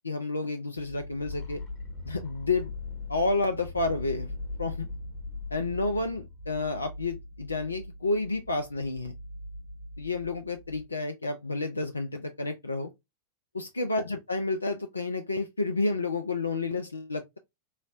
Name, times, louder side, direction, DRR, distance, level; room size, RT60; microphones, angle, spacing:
voice 1, 0.0-1.6 2.0-2.7 3.1-4.9 5.5-9.1 10.0-12.9 13.5-17.4, left 3 dB, 80° left, 0.3 m, -30 dB
sound 1, 0.8-10.9, right 1 dB, 45° left, 0.7 m, -44 dB
sound 2, 1.3-7.3, left 6 dB, 15° left, 0.8 m, -41 dB
3.1 x 2.0 x 2.3 m
figure-of-eight pair, 90°, 0 cm